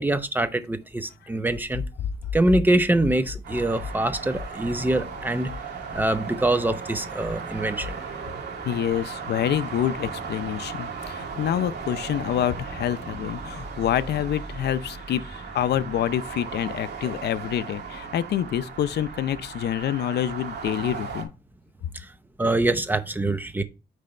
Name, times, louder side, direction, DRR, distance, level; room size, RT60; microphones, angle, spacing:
voice 1, 0.0-1.8 2.3-5.5 5.9-8.0 21.9-22.1 22.4-23.6, right 1 dB, 10° right, 0.7 m, -24 dB
sound 1, 1.5-8.3, left 6 dB, 50° left, 3.4 m, -36 dB
sound 2, 3.4-21.3, right 5 dB, 90° right, 1.7 m, -36 dB
voice 2, 8.6-21.3, left 10 dB, 75° left, 0.5 m, -27 dB
9.0 x 3.4 x 4.2 m
cardioid pair, 115°, 17 cm